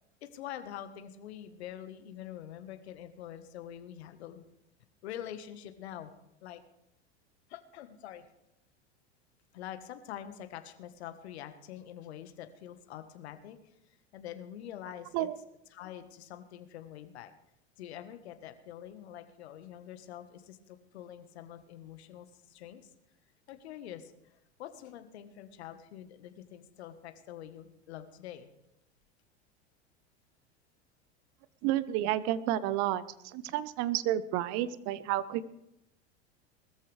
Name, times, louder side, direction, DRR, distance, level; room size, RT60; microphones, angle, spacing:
voice 1, 0.2-4.4 5.0-6.1 6.4-6.6 7.5-8.3 9.5-15.3 15.7-17.3 17.8-22.9 23.5-28.5, left 11 dB, 70° left, 9 dB, 1.5 m, -45 dB
voice 2, 31.6-35.5, right 13 dB, 55° right, 16 dB, 1.0 m, -31 dB
20.5 x 14.0 x 3.4 m, 0.80 s
hypercardioid pair, 90°, 33 cm